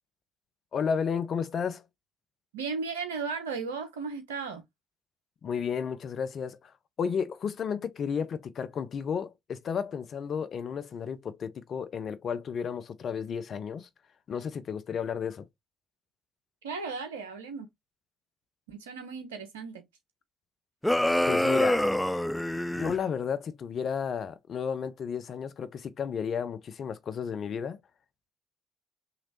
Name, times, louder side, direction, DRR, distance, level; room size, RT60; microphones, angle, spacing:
voice 1, 0.7-1.8 5.4-6.7 7.0-13.9 14.3-15.5 21.3-21.9 22.7-27.8, left 7 dB, 55° left, 0.6 m, -32 dB
voice 2, 2.5-4.6 16.6-17.7 18.7-19.8, right 5 dB, 90° right, 0.9 m, -35 dB
sound 1, 20.8-23.0, left 1 dB, 5° left, 0.3 m, -26 dB
3.9 x 3.1 x 2.8 m
hypercardioid pair, 50°, 0 cm